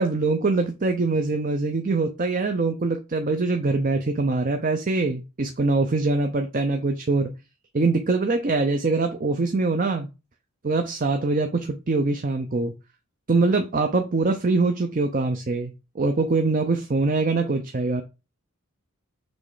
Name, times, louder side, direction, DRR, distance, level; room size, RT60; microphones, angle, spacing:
voice 1, 0.0-7.3 7.7-10.1 10.6-12.7 13.3-18.0, right 3 dB, 40° right, 0.5 m, -23 dB
6.2 x 3.1 x 4.9 m
head